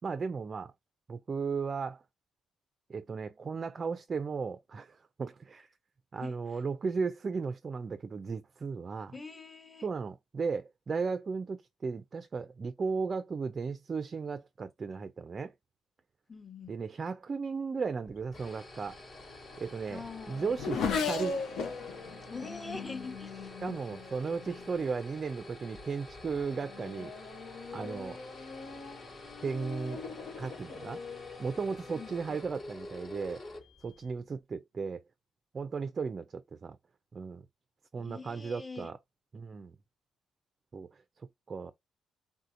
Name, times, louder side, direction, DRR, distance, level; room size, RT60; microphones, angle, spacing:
voice 1, 0.0-0.7 1.1-2.0 2.9-5.7 6.1-9.1 9.8-15.5 16.7-19.0 19.6-21.4 23.6-27.1 27.7-28.2 29.4-30.0 30.4-31.0 31.4-33.4 33.8-35.0 35.5-36.8 37.1-37.4 37.9-39.0 39.3-39.8 40.7-41.7, right 5 dB, 40° right, 0.4 m, -35 dB
voice 2, 6.2-6.6 9.1-9.9 16.3-16.8 19.9-20.5 22.3-23.5 31.9-32.4 38.0-38.9, left 4 dB, 20° left, 0.9 m, -44 dB
sound 1, 18.1-34.3, left 2 dB, 45° left, 1.2 m, -49 dB
Race car auto racing / Accelerating revving vroom, 18.9-24.8 25.6-26.0 26.4-32.3, left 5 dB, 75° left, 0.7 m, -39 dB
3.6 x 2.7 x 2.5 m
cardioid pair, 90°, 0 cm